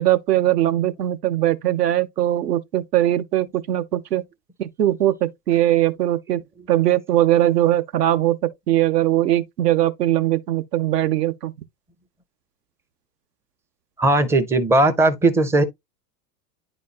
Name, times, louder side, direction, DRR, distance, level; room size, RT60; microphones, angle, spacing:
voice 1, 0.0-4.2 4.6-6.4 6.7-8.4 8.7-11.5, right 13 dB, 75° right, 0.8 m, -20 dB
voice 2, 14.0-15.6, right 2 dB, 5° right, 0.4 m, -17 dB
9.7 x 4.1 x 2.4 m
hypercardioid pair, 100°, 48 cm